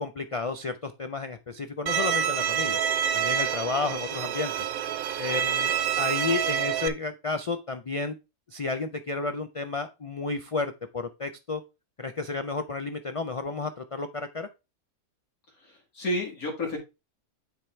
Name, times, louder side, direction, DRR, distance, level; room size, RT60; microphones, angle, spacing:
voice 1, 0.0-2.8 3.1-4.7 5.2-8.2 8.5-11.6 12.0-14.5, left 3 dB, 55° left, 8 dB, 0.3 m, -32 dB
Bowed string instrument, 1.9-6.9, right 8 dB, 80° right, 1.1 m, -27 dB
voice 2, 15.6-16.8, left 1 dB, 80° left, -2 dB, 2.3 m, -31 dB
9.7 x 3.7 x 4.5 m, 0.26 s
omnidirectional pair, 1.5 m